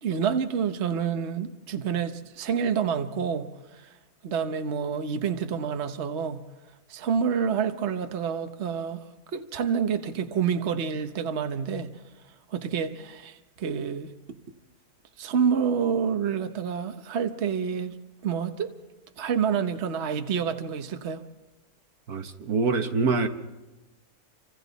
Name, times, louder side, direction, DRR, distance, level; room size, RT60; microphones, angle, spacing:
voice 1, 0.0-3.9 4.2-6.4 6.9-9.0 9.3-11.9 12.5-14.1 15.2-18.0 18.2-18.7 19.2-21.2, right 7 dB, 50° right, 7 dB, 1.2 m, -28 dB
voice 2, 22.1-23.3, right 4 dB, 80° right, 6 dB, 1.7 m, -25 dB
29.5 x 26.0 x 4.1 m, 1.1 s
omnidirectional pair, 1.6 m